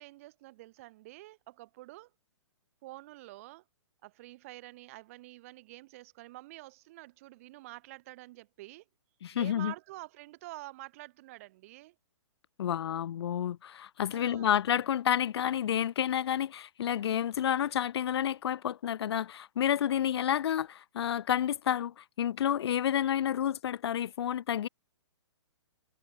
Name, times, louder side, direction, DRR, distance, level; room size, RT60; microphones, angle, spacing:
voice 1, 0.0-2.1 2.8-3.6 4.0-8.8 9.3-12.0 14.1-14.5 19.9-20.3, right 19 dB, 30° right, 0.7 m, -48 dB
voice 2, 9.2-9.7 12.6-24.7, left 10 dB, 55° left, 0.5 m, -30 dB
hypercardioid pair, 165°, 16 cm